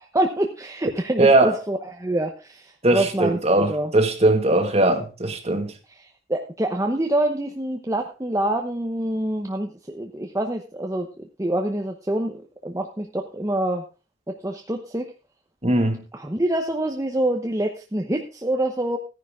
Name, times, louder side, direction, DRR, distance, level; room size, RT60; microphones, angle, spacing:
voice 1, 0.0-3.4 3.7-3.9 6.0-11.1 11.4-13.8 14.3-15.1 16.1-19.0, right 1 dB, 15° right, 0.9 m, -26 dB
voice 2, 1.2-1.6 2.8-5.7 15.6-16.0, right 2 dB, 30° right, 1.8 m, -19 dB
14.5 x 10.5 x 3.6 m
head